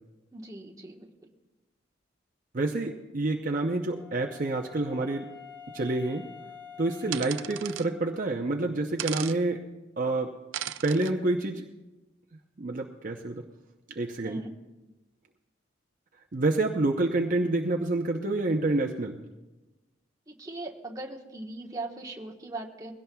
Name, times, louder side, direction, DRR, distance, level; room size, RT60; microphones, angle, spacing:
voice 1, 0.3-1.1 14.2-14.5 20.3-22.9, right 2 dB, 20° right, -1 dB, 1.2 m, -39 dB
voice 2, 2.5-5.3 5.7-6.2 6.8-9.6 10.0-10.3 10.8-11.7 12.6-13.4 13.9-14.4 16.3-19.2, right 2 dB, 45° right, 2 dB, 0.7 m, -28 dB
Wind instrument woodwind instrument, 3.5-8.3, left 6 dB, 10° left, 1.5 m, -48 dB
sound 1, 7.1-7.9 9.0-9.4 10.5-11.1, right 12 dB, 75° right, 0.5 m, -36 dB
22.0 x 16.5 x 2.3 m, 1.1 s
head